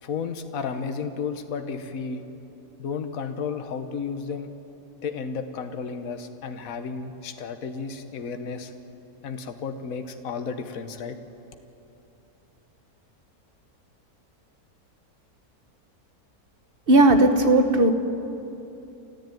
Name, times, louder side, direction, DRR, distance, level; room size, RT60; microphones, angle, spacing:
voice 1, 0.0-2.2 2.8-4.5 5.0-8.7 9.2-11.2, left 5 dB, 65° left, 7 dB, 1.6 m, -33 dB
voice 2, 16.9-17.9, right 2 dB, 35° right, 7 dB, 1.6 m, -16 dB
29.0 x 14.0 x 9.2 m, 2.9 s
omnidirectional pair, 1.6 m